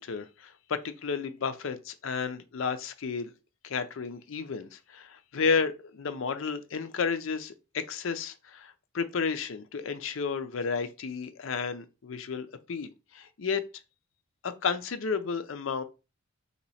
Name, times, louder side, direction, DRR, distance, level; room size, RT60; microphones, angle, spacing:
voice 1, 0.0-3.3 3.6-13.6 14.4-15.8, left 5 dB, 65° left, 0.5 m, -32 dB
3.0 x 2.9 x 4.1 m
head